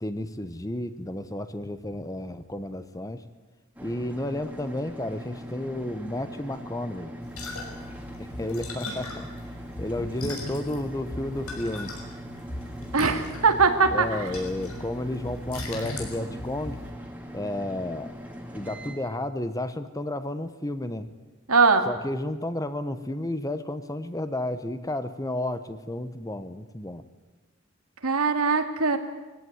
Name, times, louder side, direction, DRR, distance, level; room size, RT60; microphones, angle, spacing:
voice 1, 0.0-3.2 3.8-7.1 8.2-9.3 9.8-12.0 13.9-16.8 17.3-18.1 18.5-21.1 21.8-27.0, left 1 dB, 15° left, 11 dB, 1.0 m, -32 dB
sound 1, 3.8-18.9, equal, 5° right, 2.3 m, -41 dB
sound 2, 7.2-16.9, left 1 dB, 85° left, 5.9 m, -38 dB
voice 2, 12.9-14.1 21.5-21.9 28.0-29.0, right 4 dB, 85° right, 6 dB, 2.2 m, -21 dB
22.5 x 16.5 x 9.4 m, 1.2 s
head